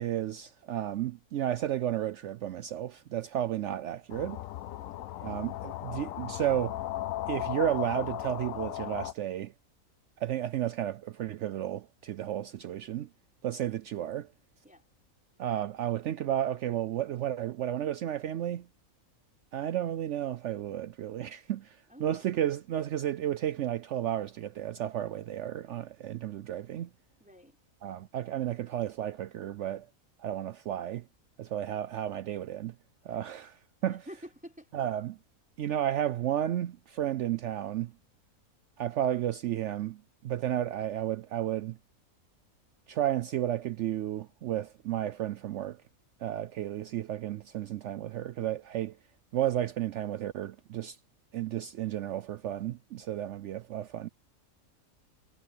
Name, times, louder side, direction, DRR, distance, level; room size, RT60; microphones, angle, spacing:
voice 1, 0.0-4.4 5.2-6.8 7.3-9.5 10.2-13.1 13.4-14.3 15.4-18.7 19.5-26.9 27.8-29.9 30.2-31.0 31.4-32.7 33.0-34.0 34.7-35.2 35.6-37.9 38.8-41.8 42.9-45.8 46.2-49.0 49.3-51.0 51.3-54.1, right 11 dB, 65° right, 0.8 m, -32 dB
sound 1, 4.1-9.1, left 14 dB, 75° left, 1.0 m, -36 dB
voice 2, 5.0-5.4 13.6-13.8 14.6-14.8 21.9-22.3 27.2-27.6 33.1-33.2 33.9-34.7, equal, 5° right, 3.6 m, -50 dB
omnidirectional pair, 1.5 m